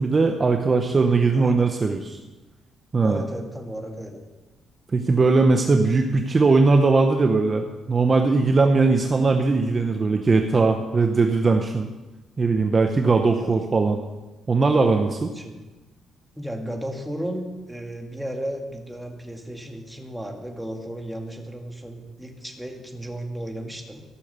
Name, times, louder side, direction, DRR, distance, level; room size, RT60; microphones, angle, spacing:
voice 1, 0.0-2.2 2.9-3.2 4.9-11.9 12.4-14.0 14.5-15.3, right 3 dB, 35° right, 4 dB, 0.9 m, -20 dB
voice 2, 1.4-1.7 3.0-4.2 13.4-13.6 15.3-15.6 16.4-24.0, right 1 dB, 5° right, 2 dB, 2.0 m, -34 dB
14.5 x 6.6 x 6.7 m, 1.1 s
cardioid pair, 90°, 0 cm